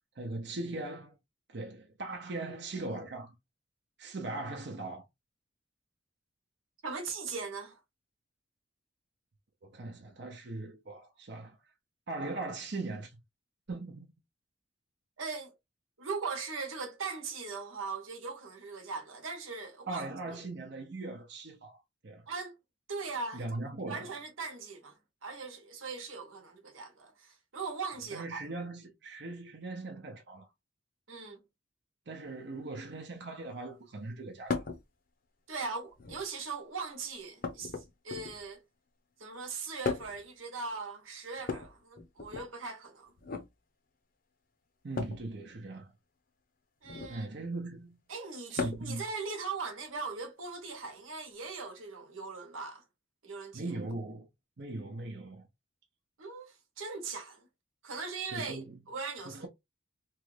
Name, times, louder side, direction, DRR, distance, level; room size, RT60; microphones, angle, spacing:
voice 1, 0.1-1.2 1.5-3.3 4.0-5.1 9.6-11.6 12.1-13.2 13.7-14.1 19.9-22.3 23.3-24.1 28.1-30.5 32.1-34.7 44.8-45.9 47.1-48.0 48.5-49.0 53.5-54.3 54.6-55.5 58.3-58.8 59.2-59.5, right 2 dB, 55° right, 0.7 m, -40 dB
voice 2, 6.8-7.8 15.2-15.5 16.0-20.1 22.3-22.6 22.9-28.4 31.1-31.4 35.5-38.6 39.2-43.1 46.8-47.3 48.1-52.8 53.2-53.7 56.2-57.5 57.8-59.5, right 4 dB, 90° right, 1.1 m, -40 dB
sound 1, 34.5-34.8 35.9-36.4 37.4-38.5 39.8-40.3 41.4-42.5 43.2-43.5 44.9-45.3 46.8-47.2 48.6-49.0 50.4-50.5 51.8-51.9, left 4 dB, 45° left, 0.6 m, -37 dB
3.1 x 2.3 x 3.2 m
head